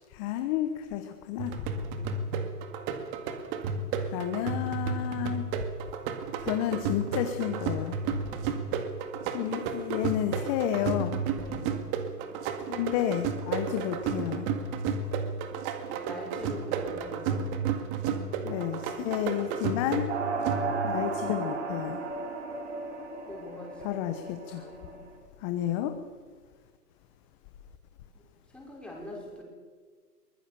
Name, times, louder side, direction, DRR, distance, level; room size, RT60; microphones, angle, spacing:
voice 1, 0.1-1.5 4.1-5.4 6.4-8.0 9.3-11.2 12.7-14.5 18.4-20.1 20.8-22.0 23.8-24.6 25.4-25.9, left 11 dB, 20° left, 8 dB, 1.0 m, -31 dB
sound 1, 1.4-21.0, right 5 dB, 25° right, 2.0 m, -32 dB
voice 2, 1.7-2.2 8.2-8.6 11.3-11.8 16.0-17.4 20.5-20.9 23.3-23.8 24.5-25.0 28.1-28.2 28.5-29.4, left 1 dB, ahead, -3 dB, 5.7 m, -44 dB
sound 2, 20.1-25.1, right 4 dB, 45° right, 5.7 m, -34 dB
23.5 x 21.0 x 6.9 m, 1.5 s
hypercardioid pair, 145°, 48 cm